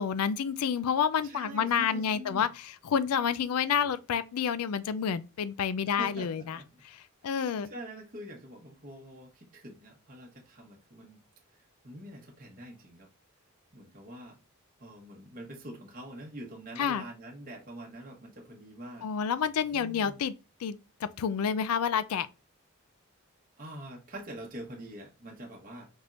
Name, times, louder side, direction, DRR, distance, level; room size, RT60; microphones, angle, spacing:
voice 1, 0.0-6.6 6.9-7.7 16.8-17.0 19.0-20.3 20.6-22.3, left 7 dB, 90° left, 0.4 m, -29 dB
voice 2, 1.2-2.5 5.9-6.8 7.2-11.2 11.5-13.1 13.7-14.4 14.8-19.1 19.7-20.2 23.6-25.9, right 1 dB, 40° right, 1.0 m, -45 dB
4.2 x 3.4 x 2.4 m
head